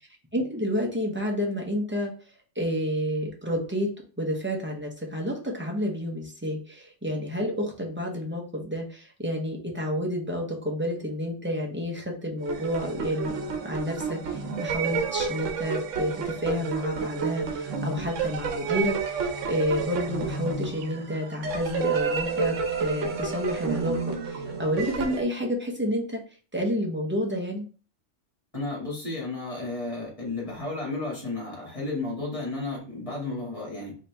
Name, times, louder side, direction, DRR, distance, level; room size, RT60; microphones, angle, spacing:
voice 1, 0.3-2.1 2.6-3.9 4.2-13.4 13.6-26.2 26.5-27.7, equal, 10° right, -1 dB, 0.7 m, -30 dB
sound 1, 12.4-25.2, right 5 dB, 85° right, 1.1 m, -30 dB
voice 2, 28.5-33.9, left 2 dB, 25° left, -4 dB, 2.0 m, -33 dB
4.1 x 2.9 x 3.3 m, 0.39 s
omnidirectional pair, 1.3 m